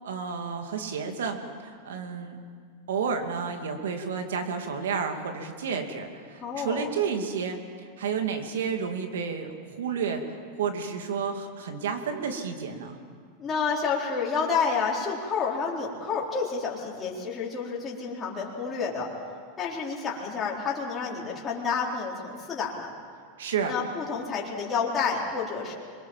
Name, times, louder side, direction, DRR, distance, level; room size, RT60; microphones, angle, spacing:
voice 1, 0.0-2.4 2.9-13.0 23.4-23.7, right 6 dB, 85° right, 5 dB, 2.5 m, -31 dB
voice 2, 6.4-6.9 13.4-19.1 19.6-22.9 23.7-25.7, left 5 dB, 25° left, -4 dB, 4.2 m, -29 dB
25.5 x 22.5 x 7.4 m, 2.1 s
supercardioid pair, 125°, 0 cm